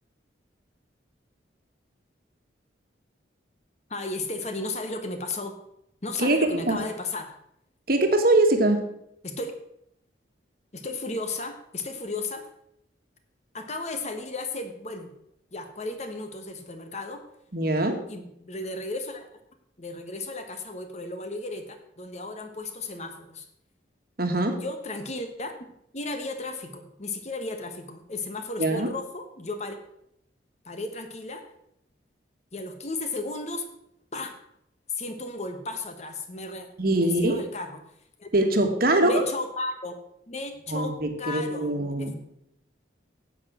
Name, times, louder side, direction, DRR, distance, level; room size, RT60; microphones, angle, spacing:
voice 1, 3.9-5.6 6.0-7.3 9.2-9.5 10.7-12.5 13.5-15.1 15.5-17.2 18.1-19.3 19.8-23.5 24.5-25.5 25.9-29.8 30.6-31.5 32.5-33.7 34.1-34.4 34.9-36.7 36.9-37.8 38.2-38.3 39.0-39.9 40.3-42.1, left 2 dB, 35° left, 7 dB, 1.3 m, -34 dB
voice 2, 6.2-6.8 7.9-8.9 17.5-18.0 24.2-24.6 28.6-28.9 36.8-37.4 38.3-39.2 40.7-42.2, right 2 dB, 50° right, 5 dB, 1.7 m, -23 dB
10.5 x 8.0 x 6.2 m, 0.76 s
head